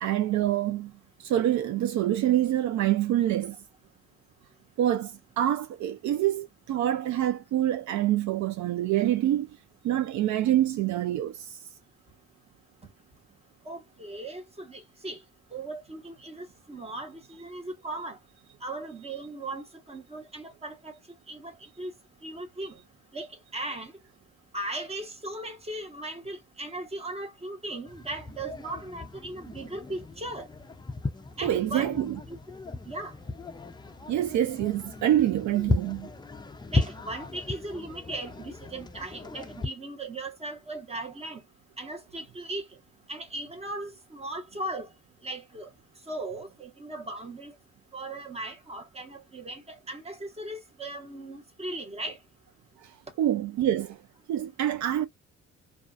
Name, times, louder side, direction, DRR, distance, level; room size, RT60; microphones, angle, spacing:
voice 1, 0.0-0.9 1.2-3.6 4.8-9.5 9.8-11.6 31.4-32.2 34.1-36.1 52.8-52.9 53.2-54.0 54.3-55.1, right 12 dB, 70° right, 0.5 m, -26 dB
voice 2, 13.6-15.2 15.5-18.2 18.6-21.0 21.3-21.9 22.2-22.8 23.1-23.9 24.5-30.5 31.4-32.4 32.8-33.1 36.7-41.4 41.8-42.6 43.1-44.9 45.2-45.7 46.1-47.5 47.9-52.2, right 2 dB, 20° right, 1.1 m, -38 dB
sound 1, 27.9-39.7, left 3 dB, 15° left, 0.4 m, -35 dB
2.4 x 2.3 x 2.4 m
cardioid pair, 90°, 30 cm